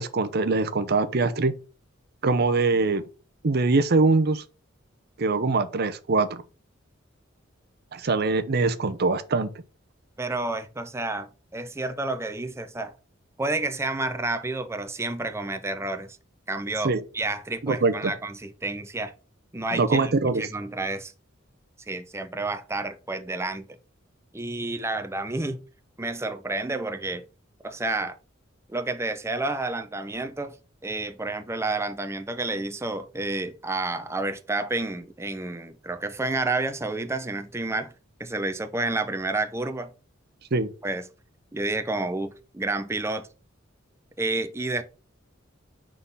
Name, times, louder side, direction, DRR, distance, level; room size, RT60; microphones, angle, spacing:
voice 1, 0.0-1.5 2.2-3.1 3.4-4.4 5.2-6.4 7.9-9.5 16.8-17.0 17.6-18.1 19.7-20.4 40.5-40.7, right 3 dB, 55° right, 0.7 m, -23 dB
voice 2, 10.2-12.9 13.4-16.2 16.5-19.1 19.5-21.1 21.9-23.7 24.3-25.6 26.0-27.2 27.6-28.2 28.7-30.6 30.8-37.9 38.2-39.9 40.8-41.1 41.5-43.3 44.2-44.8, right 2 dB, 15° right, 0.6 m, -30 dB
6.0 x 3.8 x 5.5 m
head